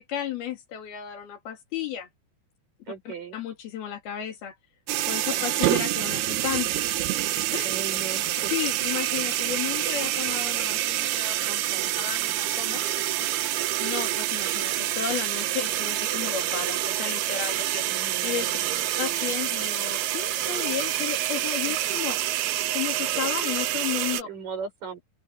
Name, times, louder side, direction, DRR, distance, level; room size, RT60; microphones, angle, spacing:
voice 1, 0.0-2.1 3.1-4.6 5.1-7.0 7.5-7.7 8.5-11.4 12.0-12.8 13.8-17.8 18.2-18.5 19.0-22.2 22.7-24.3, left 10 dB, 75° left, 4.5 m, -33 dB
voice 2, 2.9-3.4 5.4-5.8 7.6-8.5 9.2-9.4 11.5-11.9 17.9-19.3 21.7-21.9 24.2-25.0, right 6 dB, 60° right, 8.0 m, -39 dB
sound 1, 4.9-24.2, right 13 dB, 85° right, 3.1 m, -27 dB
open air
omnidirectional pair, 4.4 m